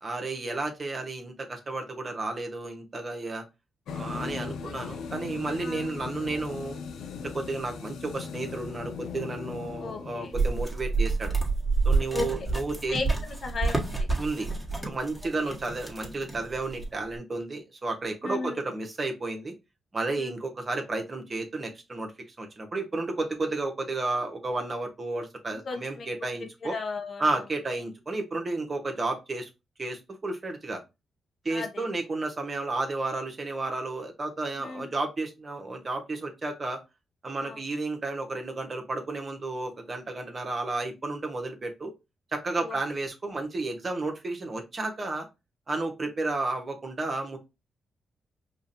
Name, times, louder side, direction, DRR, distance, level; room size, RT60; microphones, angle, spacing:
voice 1, 0.0-3.4 3.9-6.8 7.3-11.4 11.8-13.0 14.2-14.5 14.8-19.5 19.9-26.8 27.2-29.5 29.8-30.8 31.4-36.8 37.2-41.9 42.3-45.2 45.7-47.4, right 2 dB, 40° right, 3 dB, 1.2 m, -32 dB
sound 1, 3.9-10.8, left 5 dB, 80° left, 0.6 m, -38 dB
voice 2, 9.8-10.3 12.1-12.5 12.9-14.1 14.4-14.9 15.5-15.6 18.2-18.6 20.2-20.3 25.7-26.1 26.6-27.3 31.5-31.8 34.6-34.9 37.4-37.6 42.6-42.8, left 3 dB, 60° left, 4 dB, 1.0 m, -35 dB
sound 2, 10.3-17.1, right 3 dB, 5° right, 1.6 m, -29 dB
5.0 x 2.5 x 2.7 m, 0.25 s
supercardioid pair, 60°, 0 cm